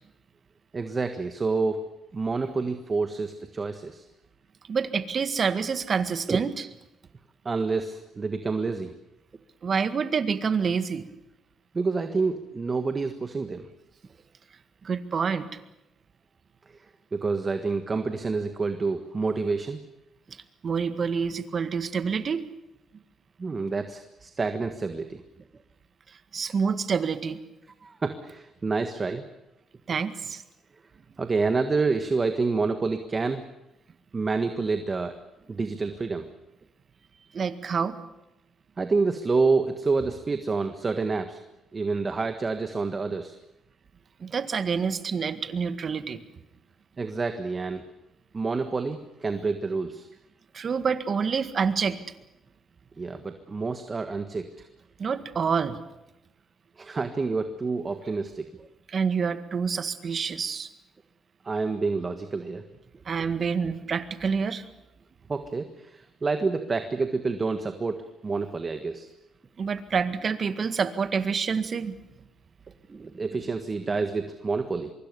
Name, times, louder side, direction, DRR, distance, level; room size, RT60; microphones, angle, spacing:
voice 1, 0.7-1.8 2.1-4.1 6.3-6.4 7.4-8.9 11.7-13.7 17.1-19.8 23.4-25.2 27.8-29.3 31.2-33.4 34.1-35.1 35.5-36.3 38.8-41.4 41.7-43.3 47.0-47.8 48.3-50.1 53.0-54.6 56.8-58.7 61.4-62.6 65.3-69.1 72.9-74.9, right 4 dB, 30° right, 8 dB, 1.6 m, -28 dB
voice 2, 4.7-6.5 9.6-11.1 14.8-15.5 20.6-22.4 26.3-27.4 29.9-30.4 37.3-38.0 44.2-46.2 50.5-52.0 55.0-55.8 58.9-60.7 63.1-64.7 69.6-72.0, right 6 dB, 45° right, 11 dB, 1.8 m, -27 dB
24.5 x 23.5 x 6.9 m, 0.91 s
cardioid pair, 90°, 0 cm